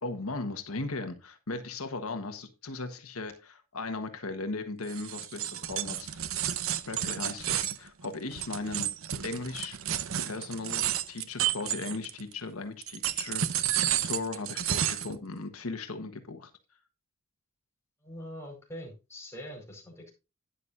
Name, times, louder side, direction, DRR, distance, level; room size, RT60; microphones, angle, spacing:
voice 1, 0.0-6.4 6.9-8.9 9.2-9.8 10.2-16.5, left 3 dB, 80° left, 7 dB, 1.3 m, -37 dB
sound 1, 4.9-12.3 12.8-15.2, right 11 dB, 65° right, 0.8 m, -31 dB
voice 2, 18.0-20.1, equal, 10° left, -1 dB, 4.7 m, -43 dB
11.5 x 10.0 x 2.6 m, 0.29 s
head